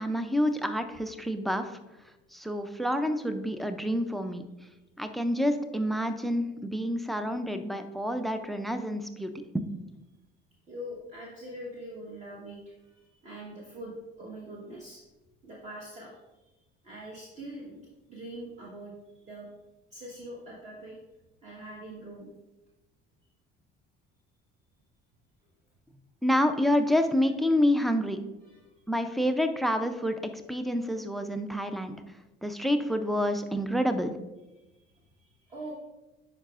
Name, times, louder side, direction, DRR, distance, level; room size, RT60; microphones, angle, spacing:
voice 1, 0.0-1.8 2.3-4.4 5.0-9.6 26.2-28.2 28.9-31.9 32.4-34.1, equal, ahead, 8 dB, 0.3 m, -28 dB
voice 2, 10.7-15.0 15.4-16.4 16.8-17.8 18.1-19.5 19.9-21.0 21.4-22.3 28.5-28.6 34.7-35.7, right 1 dB, 35° right, -4 dB, 1.1 m, -43 dB
10.0 x 4.9 x 2.4 m, 1.0 s
cardioid pair, 140°, 21 cm